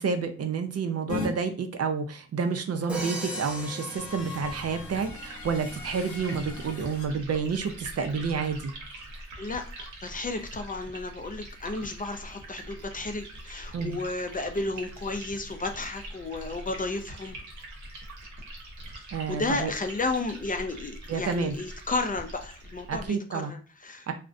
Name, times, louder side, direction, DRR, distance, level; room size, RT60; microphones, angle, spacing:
voice 1, 0.0-8.7 13.7-14.0 19.1-19.7 21.1-21.6 22.9-23.5 24.1-24.2, right 5 dB, 55° right, 7 dB, 0.5 m, -29 dB
sound 1, 1.1-1.3 2.7-7.1, left 4 dB, 85° left, 0.7 m, -40 dB
Crash cymbal, 2.9-5.1, right 2 dB, 5° right, 0.7 m, -38 dB
Liquid, 4.0-23.1, right 1 dB, 85° right, 0.8 m, -43 dB
voice 2, 9.4-17.4 19.3-24.1, left 3 dB, 30° left, 6 dB, 0.4 m, -33 dB
2.4 x 2.1 x 2.5 m, 0.36 s
cardioid pair, 65°, 29 cm